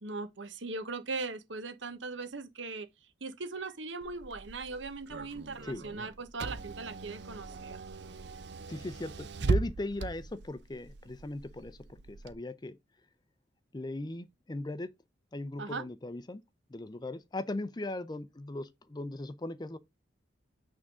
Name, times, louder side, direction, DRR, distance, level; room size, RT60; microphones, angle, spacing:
voice 1, 0.0-2.9 3.2-7.8 15.6-15.9, right 3 dB, 75° right, 1.2 m, -39 dB
Car / Engine, 4.0-12.3, right 3 dB, 60° right, 0.6 m, -38 dB
voice 2, 8.7-12.8 13.7-14.9 15.3-16.4 16.7-19.8, left 2 dB, 20° left, 0.5 m, -38 dB
8.6 x 3.6 x 4.8 m
head